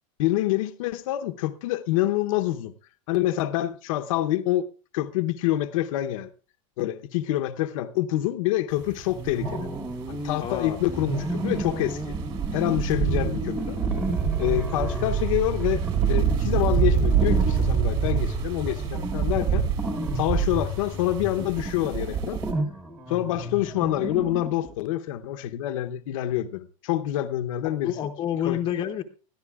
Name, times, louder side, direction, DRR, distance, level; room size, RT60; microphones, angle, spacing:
voice 1, 0.2-2.7 3.1-4.7 4.9-6.3 6.8-9.7 10.1-12.1 12.5-13.8 14.4-15.8 16.1-19.7 20.2-22.4 23.1-27.9 28.4-28.6, left 14 dB, 70° left, 0.9 m, -26 dB
sound 1, 8.8-22.5, right 7 dB, 35° right, 3.0 m, -27 dB
sound 2, 9.1-10.5 10.8-24.7, right 1 dB, 10° right, 1.2 m, -33 dB
voice 2, 10.4-10.8 27.6-29.0, left 10 dB, 30° left, 0.8 m, -29 dB
21.5 x 13.5 x 2.4 m
supercardioid pair, 150°, 18 cm